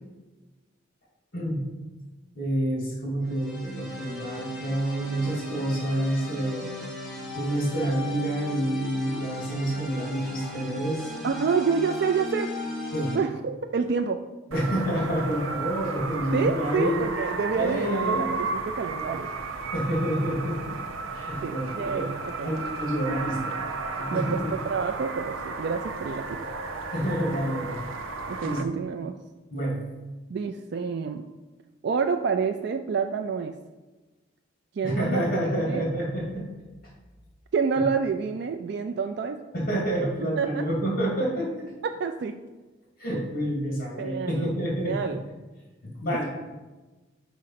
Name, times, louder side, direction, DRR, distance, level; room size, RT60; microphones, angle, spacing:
voice 1, 1.3-1.7 2.3-6.8 7.3-11.1 12.9-13.2 14.5-17.0 17.6-18.4 19.7-20.7 21.1-23.6 23.9-24.5 26.9-27.9 28.4-28.8 29.5-29.8 34.8-36.4 37.8-37.9 39.5-41.5 43.0-45.1 45.8-46.2, right 1 dB, 50° left, -4 dB, 2.2 m, -28 dB
sound 1, 3.2-13.2, left 2 dB, ahead, 1.1 m, -37 dB
voice 2, 11.2-12.5 13.1-14.2 16.3-19.3 21.4-22.5 24.1-26.4 28.3-29.1 30.3-31.2 31.8-33.6 34.7-35.8 37.5-39.4 40.2-40.7 41.8-42.4 44.0-44.5 44.8-45.2 46.1-46.2, right 5 dB, 55° right, 6 dB, 0.3 m, -28 dB
sound 2, 14.5-28.6, right 4 dB, 90° right, 0.6 m, -33 dB
5.1 x 4.7 x 5.7 m, 1.2 s
head